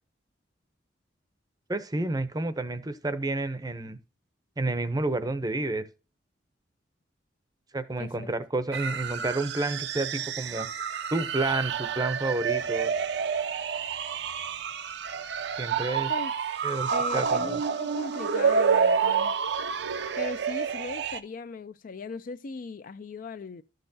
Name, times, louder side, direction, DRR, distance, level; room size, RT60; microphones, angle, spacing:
voice 1, 1.7-4.0 4.6-5.9 7.7-10.7 11.1-12.9 15.6-16.1 16.6-17.6, right 2 dB, 20° right, 0.6 m, -30 dB
voice 2, 8.0-8.3 16.1-16.3 16.9-19.3 20.2-23.6, left 4 dB, 50° left, 0.4 m, -38 dB
sound 1, 8.7-21.2, right 6 dB, 65° right, 0.5 m, -28 dB
12.0 x 6.6 x 2.7 m
head